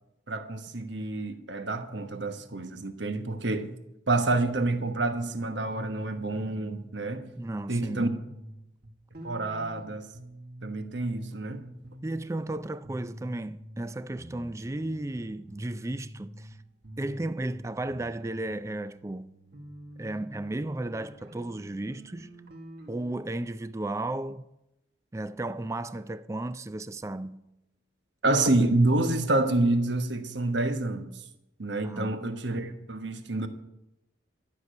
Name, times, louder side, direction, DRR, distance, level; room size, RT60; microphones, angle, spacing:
voice 1, 0.3-3.7 4.1-7.3 7.7-8.1 9.2-10.1 10.6-11.6 28.2-31.2 31.6-33.5, right 2 dB, 70° right, 1.2 m, -28 dB
voice 2, 7.4-8.0 12.0-16.6 17.0-19.4 20.0-22.4 22.9-24.4 25.1-27.5 31.8-32.2, right 2 dB, 15° right, 0.3 m, -34 dB
sound 1, 7.9-11.2 11.5-13.9 14.2-16.5 16.8-23.2, right 1 dB, 55° right, 1.7 m, -47 dB
12.5 x 6.6 x 9.1 m
head